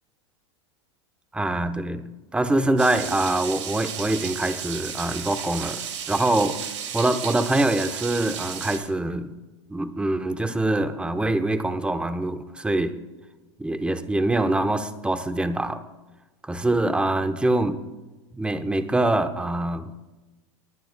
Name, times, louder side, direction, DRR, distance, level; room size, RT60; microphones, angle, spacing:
voice 1, 1.3-5.8 6.1-6.6 6.9-9.3 9.7-12.9 13.6-15.8 16.4-17.8 18.3-19.9, right 2 dB, 5° right, 8 dB, 0.9 m, -24 dB
sound 1, 2.8-8.8, right 8 dB, 80° right, 1.8 m, -33 dB
29.5 x 10.5 x 2.3 m, 1.1 s
hypercardioid pair, 110°, 15 cm